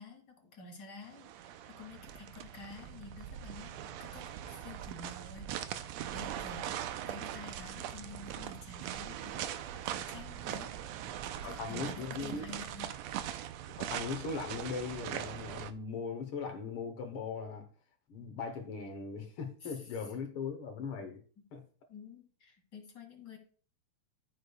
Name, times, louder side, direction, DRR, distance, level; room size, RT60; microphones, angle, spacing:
voice 1, 0.0-5.7 6.1-6.8 7.1-9.5 9.8-10.7 11.4-12.9 19.6-19.8 21.9-23.4, left 4 dB, 35° left, 2.6 m, -50 dB
sound 1, 1.1-15.7, right 11 dB, 80° right, 1.6 m, -41 dB
voice 2, 11.2-12.5 13.8-17.7 18.1-21.2 21.5-21.6, left 5 dB, 65° left, 1.4 m, -39 dB
14.0 x 6.7 x 2.3 m
omnidirectional pair, 3.5 m